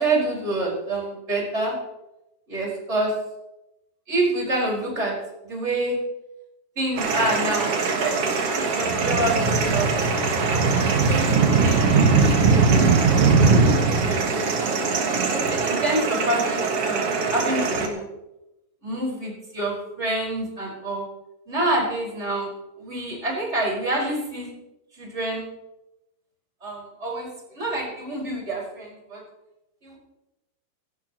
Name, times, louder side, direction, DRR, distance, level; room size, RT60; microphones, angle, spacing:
voice 1, 0.0-1.8 2.5-3.1 4.1-5.1 5.4-6.0 6.8-8.1 8.5-9.9 10.5-11.9 12.5-13.0 13.4-14.9 15.3-18.1 18.8-21.1 21.5-22.5 22.8-24.5 24.9-25.4 26.6-29.2 29.8-30.0, right 2 dB, 15° right, -4 dB, 5.2 m, -27 dB
sound 1, 7.0-17.9, right 4 dB, 50° right, 2.0 m, -21 dB
17.0 x 16.5 x 3.0 m, 0.94 s
omnidirectional pair, 4.5 m